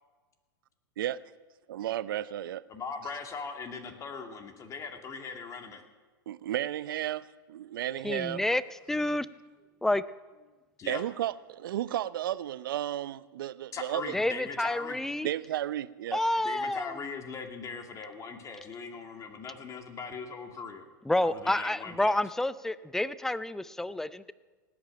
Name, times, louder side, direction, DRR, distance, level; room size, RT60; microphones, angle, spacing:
voice 1, 1.7-2.6 6.3-8.4 10.9-14.1 15.2-16.2, right 12 dB, 70° right, 18 dB, 0.6 m, -33 dB
voice 2, 2.7-5.8 10.8-11.0 13.7-15.0 16.4-20.8 21.2-22.2, left 5 dB, 25° left, 5 dB, 2.3 m, -40 dB
voice 3, 8.0-8.6 8.9-9.3 9.8-10.0 14.1-15.3 16.1-17.0 21.1-24.3, left 1 dB, 5° left, 17 dB, 0.5 m, -29 dB
17.5 x 8.9 x 9.0 m, 1.3 s
hypercardioid pair, 105°, 12 cm